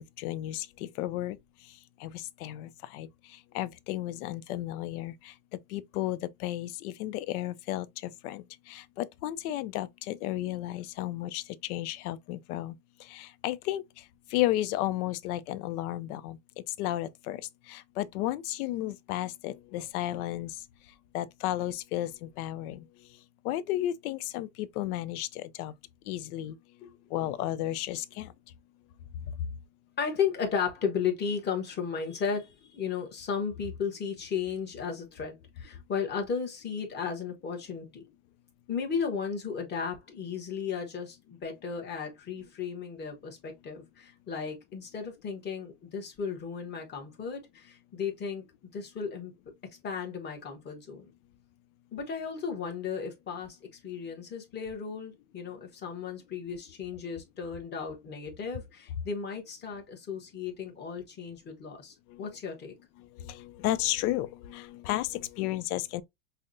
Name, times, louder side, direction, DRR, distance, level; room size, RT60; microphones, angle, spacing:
voice 1, 0.0-1.4 2.0-5.3 5.7-12.7 13.0-14.0 14.3-16.4 16.8-17.4 17.7-20.6 21.1-22.8 23.4-25.7 26.1-26.6 27.1-28.3 62.1-62.2 63.0-66.0, left 14 dB, 85° left, 0.6 m, -33 dB
voice 2, 30.0-38.0 38.7-48.4 48.7-49.3 49.8-51.1 51.9-53.6 53.8-62.7, left 6 dB, 25° left, 1.0 m, -35 dB
5.5 x 2.1 x 2.5 m
supercardioid pair, 145°, 43 cm